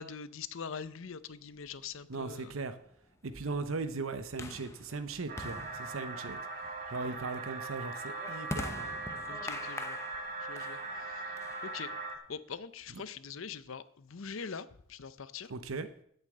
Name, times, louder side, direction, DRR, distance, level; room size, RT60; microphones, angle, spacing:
voice 1, 0.0-2.5 9.3-10.0 10.4-11.3 11.6-11.9 12.3-15.5, left 6 dB, 70° left, 15 dB, 0.6 m, -43 dB
sound 1, 1.7-12.1, left 2 dB, 15° left, 0.8 m, -45 dB
voice 2, 2.1-2.8 3.2-6.4 6.9-8.9 15.5-15.9, right 3 dB, 75° right, 10 dB, 0.8 m, -38 dB
sound 2, 5.3-12.2, right 3 dB, 40° right, 1.6 m, -40 dB
8.1 x 7.4 x 8.6 m, 0.66 s
head